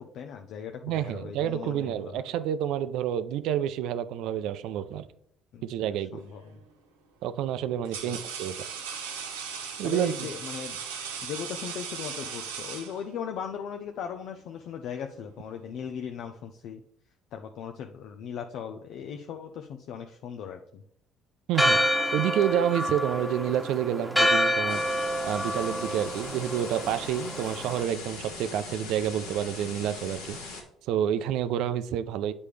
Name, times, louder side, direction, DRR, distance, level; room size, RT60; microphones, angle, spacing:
voice 1, 0.0-2.2 5.5-5.7 6.0-6.6 7.8-8.2 9.8-10.8 11.2-16.8 17.3-20.8, left 8 dB, 65° left, 5 dB, 0.5 m, -38 dB
voice 2, 0.8-5.1 5.6-6.2 7.2-8.6 9.8-10.3 21.5-21.8 22.1-24.8 25.2-30.4 30.9-32.3, right 10 dB, 70° right, 12 dB, 0.5 m, -29 dB
sound 1, 6.3-6.6 7.4-13.4, right 7 dB, 85° right, 0.9 m, -38 dB
Church bell, 21.5-27.8, equal, ahead, 1.4 m, -28 dB
sound 2, 24.7-30.6, left 3 dB, 85° left, 1.6 m, -40 dB
8.3 x 5.2 x 3.3 m, 0.71 s
hypercardioid pair, 60°, 0 cm